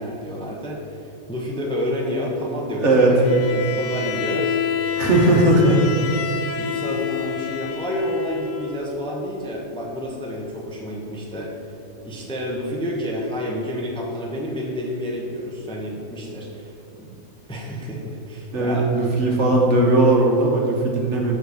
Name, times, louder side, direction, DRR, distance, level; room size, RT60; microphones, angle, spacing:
voice 1, 0.0-4.6 5.3-5.8 6.6-11.6 12.0-17.2 17.5-18.9, equal, 5° left, -2 dB, 0.8 m, -29 dB
voice 2, 2.8-3.2 4.9-5.9 18.5-21.4, right 2 dB, 55° right, -1 dB, 1.5 m, -18 dB
Bowed string instrument, 3.2-8.8, left 8 dB, 65° left, 0.9 m, -28 dB
7.8 x 5.1 x 6.4 m, 2.7 s
omnidirectional pair, 1.5 m